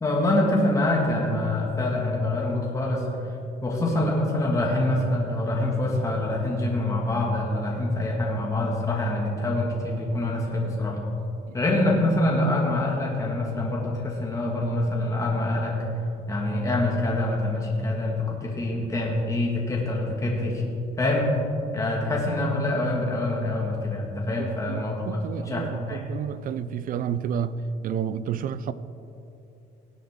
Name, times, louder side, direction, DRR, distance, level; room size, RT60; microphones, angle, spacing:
voice 1, 0.0-3.0 3.6-11.0 11.5-15.7 16.3-20.6 21.0-21.3 21.7-26.0, left 1 dB, 20° left, -3 dB, 1.8 m, -25 dB
voice 2, 24.4-27.6 27.8-28.7, right 8 dB, 55° right, 15 dB, 0.5 m, -30 dB
18.0 x 7.3 x 3.7 m, 2.7 s
cardioid pair, 110°, 17 cm